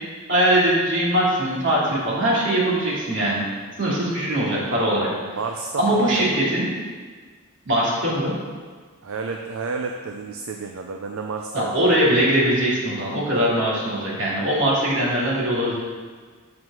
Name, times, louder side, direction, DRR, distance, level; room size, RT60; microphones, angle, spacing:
voice 1, 0.3-3.5 3.8-5.4 5.8-6.7 7.6-8.3 11.5-15.8, right 1 dB, 60° right, -5 dB, 2.5 m, -21 dB
voice 2, 4.9-6.5 9.0-11.9, right 4 dB, 80° right, 3 dB, 0.5 m, -31 dB
7.4 x 4.8 x 6.1 m, 1.5 s
head